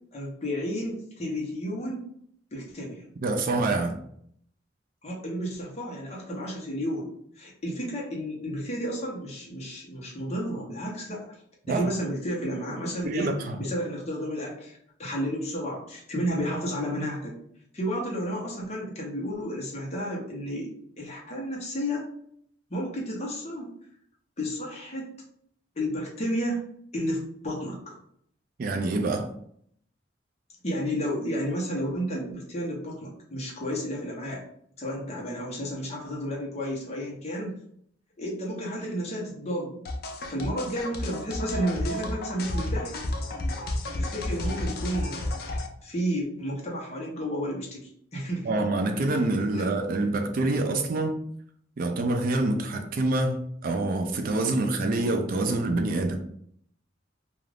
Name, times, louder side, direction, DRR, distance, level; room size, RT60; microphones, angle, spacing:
voice 1, 0.1-2.0 2.5-3.1 5.0-7.1 7.4-11.3 11.7-17.3 17.7-20.7 21.0-22.1 22.7-23.7 24.4-25.1 25.8-26.6 26.9-27.9 30.6-34.5 34.8-37.6 38.2-39.8 40.3-43.0 43.9-45.2 45.8-48.6 49.5-49.7, equal, 35° left, -3 dB, 0.8 m, -32 dB
voice 2, 3.2-4.0 11.7-11.9 13.0-13.6 28.6-29.3 48.5-51.2 51.8-56.2, right 2 dB, 45° right, 5 dB, 0.4 m, -26 dB
sound 1, 39.9-45.7, left 1 dB, 50° left, 0.4 m, -31 dB
2.4 x 2.4 x 3.2 m, 0.66 s
head